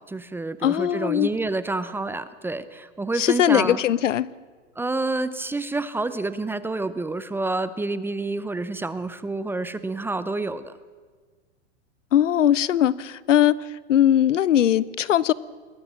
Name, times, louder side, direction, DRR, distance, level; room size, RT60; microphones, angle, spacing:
voice 1, 0.0-3.8 4.8-10.8, right 2 dB, 5° right, 14 dB, 0.6 m, -28 dB
voice 2, 0.6-1.3 3.2-4.3 12.1-13.5 13.9-15.3, left 11 dB, 85° left, 21 dB, 0.8 m, -20 dB
21.0 x 18.5 x 7.5 m, 1.5 s
hypercardioid pair, 125°, 36 cm